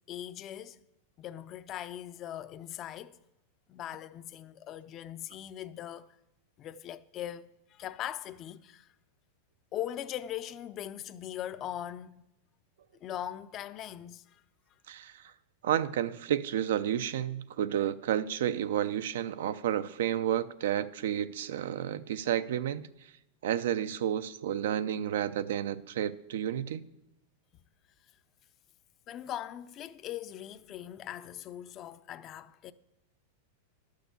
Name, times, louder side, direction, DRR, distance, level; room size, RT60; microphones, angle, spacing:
voice 1, 0.1-0.8 1.2-3.2 3.7-6.1 6.6-8.9 9.7-12.2 13.0-14.4 29.1-32.7, left 11 dB, 30° left, 0.5 m, -40 dB
voice 2, 14.9-15.2 15.6-22.9 23.4-26.8, right 10 dB, 75° right, 0.6 m, -31 dB
11.5 x 6.5 x 6.8 m
supercardioid pair, 145°, 0 cm